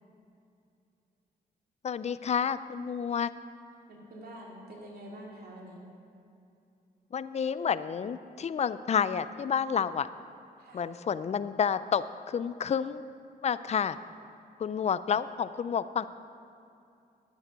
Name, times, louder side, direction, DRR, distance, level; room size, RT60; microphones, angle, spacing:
voice 1, 1.8-3.3 7.1-10.1 10.7-13.0 13.4-14.0 14.6-16.1, left 7 dB, 40° left, 15 dB, 0.4 m, -30 dB
voice 2, 3.9-5.8 10.6-10.9, right 1 dB, 70° right, -2 dB, 2.5 m, -46 dB
11.0 x 9.1 x 5.1 m, 2.7 s
cardioid pair, 75°, 17 cm